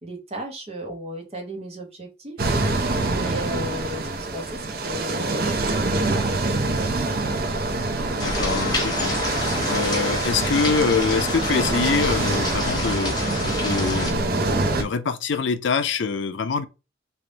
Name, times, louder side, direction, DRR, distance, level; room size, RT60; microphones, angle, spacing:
voice 1, 0.0-2.4 3.0-7.3, equal, 35° right, 1.0 m, -35 dB
sound 1, 2.4-14.8, right 2 dB, 50° right, 0.5 m, -25 dB
voice 2, 8.2-13.1 13.6-14.5 14.7-16.7, left 5 dB, 75° left, 0.5 m, -25 dB
sound 2, 8.2-14.1, left 2 dB, 20° left, 0.9 m, -29 dB
3.4 x 2.5 x 3.9 m
head